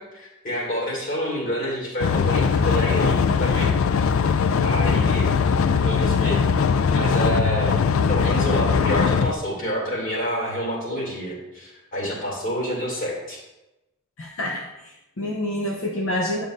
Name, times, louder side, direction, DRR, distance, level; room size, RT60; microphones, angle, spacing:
voice 1, 0.0-3.7 4.6-5.3 5.6-6.4 6.9-7.8 8.1-13.4, equal, 45° left, -3 dB, 2.5 m, -28 dB
sound 1, 2.0-9.3, left 6 dB, 90° left, 0.4 m, -20 dB
voice 2, 14.2-16.4, left 1 dB, 70° left, -1 dB, 0.8 m, -28 dB
9.5 x 6.8 x 2.6 m, 0.98 s
head